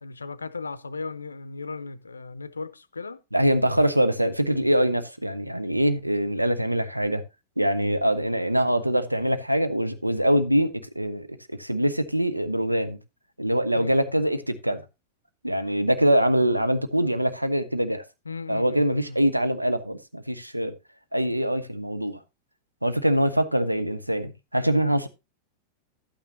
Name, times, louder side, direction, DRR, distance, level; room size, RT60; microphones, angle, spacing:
voice 1, 0.0-3.2 13.7-14.0 18.3-19.2, left 4 dB, 75° left, 0.5 m, -36 dB
voice 2, 3.3-7.2 7.6-13.0 13.4-14.8 15.4-18.0 18.5-20.7 21.1-22.2 22.8-25.1, equal, 85° right, 0.7 m, -24 dB
11.5 x 8.9 x 2.8 m
figure-of-eight pair, 90°, 0 cm